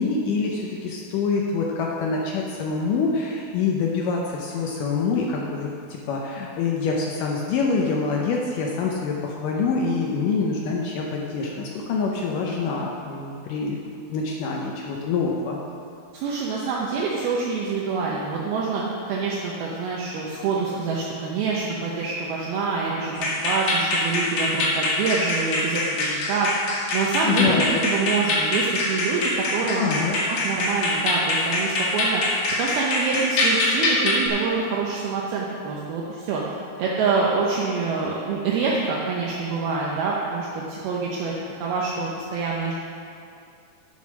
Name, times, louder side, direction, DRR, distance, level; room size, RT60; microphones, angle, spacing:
voice 1, 0.0-13.8 14.1-15.6 27.2-27.6 28.0-28.1 29.7-30.2, left 4 dB, 80° left, -1 dB, 1.9 m, -25 dB
voice 2, 16.1-26.5 26.9-29.9 30.3-32.2 32.6-36.4 36.8-41.3 41.6-42.7, right 4 dB, 75° right, -4 dB, 2.6 m, -26 dB
sound 1, 23.2-34.3, left 2 dB, 60° left, 2.8 m, -24 dB
10.0 x 6.3 x 6.0 m, 2.5 s
omnidirectional pair, 4.8 m